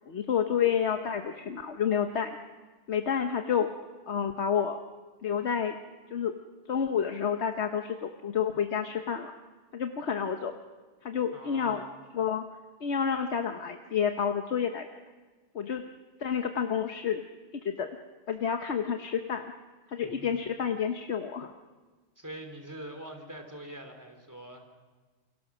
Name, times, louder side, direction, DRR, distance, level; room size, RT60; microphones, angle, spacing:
voice 1, 0.1-2.3 2.9-3.7 4.1-4.8 5.2-5.7 6.1-6.3 6.7-9.3 9.7-10.6 11.0-11.8 12.1-12.4 12.8-14.9 15.5-15.8 16.2-17.2 17.5-17.9 18.3-19.4 19.9-21.5, left 7 dB, 70° left, 5 dB, 1.3 m, -29 dB
voice 2, 11.3-11.9 20.0-20.3 22.2-24.7, right 1 dB, 15° right, 4 dB, 3.5 m, -44 dB
28.5 x 23.5 x 6.2 m, 1.4 s
omnidirectional pair, 1.2 m